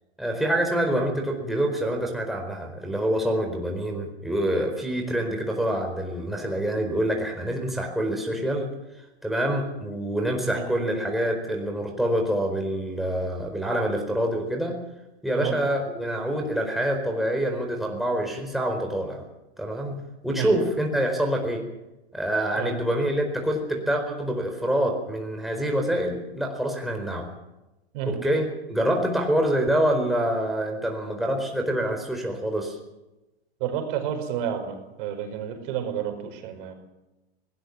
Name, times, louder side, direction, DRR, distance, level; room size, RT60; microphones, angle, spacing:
voice 1, 0.2-8.7 9.2-14.7 15.2-19.2 19.6-20.0 20.2-21.6 22.1-27.3 28.0-32.8, right 1 dB, ahead, 1 dB, 4.5 m, -26 dB
voice 2, 33.6-36.7, right 9 dB, 50° right, 6 dB, 5.3 m, -30 dB
20.0 x 19.0 x 7.4 m, 0.99 s
hypercardioid pair, 110°, 33 cm